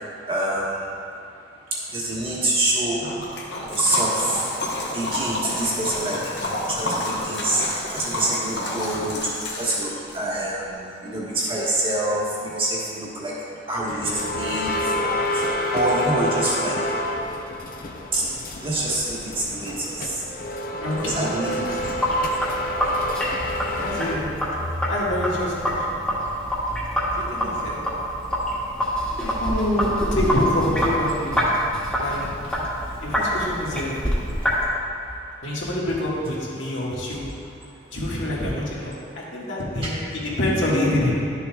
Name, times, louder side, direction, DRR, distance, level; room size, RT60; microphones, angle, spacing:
voice 1, 0.3-0.7 1.9-3.0 3.7-4.4 4.9-13.3 13.7-14.7 15.0-15.4 15.7-16.8 18.1-18.2 18.6-20.2 21.0-21.8 39.8-39.9, right 1 dB, 30° right, -6 dB, 1.4 m, -26 dB
Liquid, 3.0-10.2, left 1 dB, 65° left, 1.2 m, -29 dB
sound 1, 13.9-24.2, left 1 dB, 45° left, 0.5 m, -28 dB
voice 2, 20.8-21.3 23.8-24.3 24.9-25.8 27.2-27.8 29.2-31.4 32.0-32.3 33.0-34.0 35.4-37.2 37.9-40.0 40.4-41.1, left 1 dB, 80° left, -6 dB, 1.7 m, -26 dB
Sink (filling or washing), 21.8-34.7, equal, 5° left, 1.1 m, -26 dB
11.5 x 6.8 x 2.3 m, 2.7 s
head